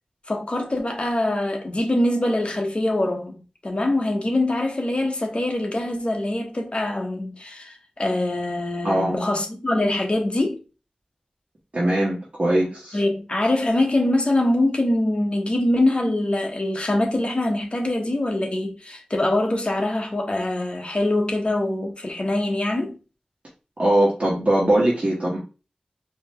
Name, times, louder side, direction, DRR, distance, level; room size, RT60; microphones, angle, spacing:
voice 1, 0.3-10.6 12.9-22.9, left 1 dB, 45° left, 1.2 m, -23 dB
voice 2, 8.8-9.2 11.7-13.0 23.8-25.4, right 1 dB, 55° right, 1.4 m, -21 dB
4.5 x 3.0 x 3.1 m
wide cardioid pair, 65°, 3 cm